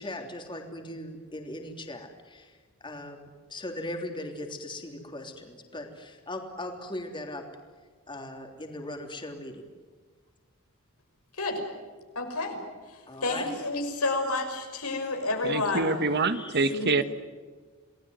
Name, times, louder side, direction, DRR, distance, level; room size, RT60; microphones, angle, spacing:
voice 1, 0.0-7.4 8.1-9.6 13.1-13.5 16.3-16.5, left 1 dB, 20° left, 3 dB, 3.3 m, -39 dB
voice 2, 12.1-12.6 12.9-16.0 16.7-17.0, left 2 dB, 90° left, 4 dB, 5.9 m, -30 dB
voice 3, 15.4-17.0, right 3 dB, 50° right, 11 dB, 1.3 m, -26 dB
29.0 x 19.5 x 9.4 m, 1.5 s
head